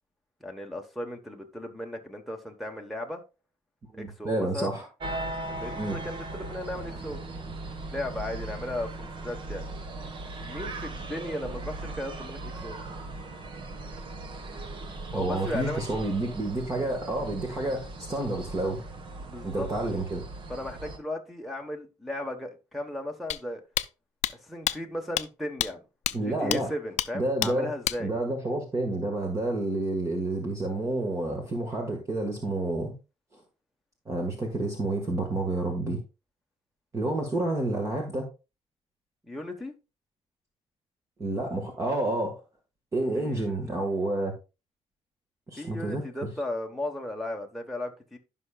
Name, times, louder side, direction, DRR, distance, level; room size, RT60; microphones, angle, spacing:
voice 1, 0.4-3.2 3.9-4.7 5.5-7.2 7.9-9.6 10.4-12.8 15.1-15.8 19.2-19.9 20.5-23.6 24.3-25.8 26.1-28.1 37.4-37.5 39.2-39.7 43.1-43.6 45.6-48.2, left 1 dB, ahead, 1.1 m, -36 dB
voice 2, 3.9-4.9 5.7-6.0 15.1-18.8 19.4-20.2 26.1-26.7 27.1-27.7 28.0-33.0 34.1-36.0 36.9-38.3 41.2-42.4 42.9-44.3 45.5-46.0, right 2 dB, 25° right, 1.6 m, -29 dB
sound 1, 5.0-21.0, right 2 dB, 45° right, 1.3 m, -38 dB
sound 2, 23.3-23.4 23.8-23.9 24.2-24.3 24.7-24.8 25.2-25.3 25.6-25.7 26.1-26.2 26.5-26.6 27.0-27.1 27.4-27.5 27.8-28.0, left 13 dB, 80° left, 0.5 m, -27 dB
15.0 x 5.8 x 2.3 m
cardioid pair, 140°, 12 cm